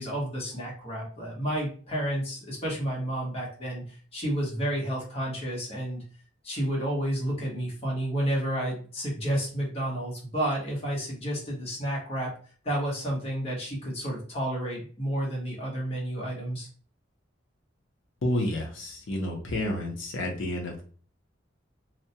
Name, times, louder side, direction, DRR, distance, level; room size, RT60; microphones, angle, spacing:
voice 1, 0.0-3.8 4.1-6.0 6.4-12.3 12.6-16.7, right 1 dB, 30° left, -3 dB, 1.0 m, -31 dB
voice 2, 18.2-20.8, left 1 dB, 85° left, 1 dB, 0.6 m, -30 dB
2.3 x 2.1 x 2.7 m, 0.41 s
head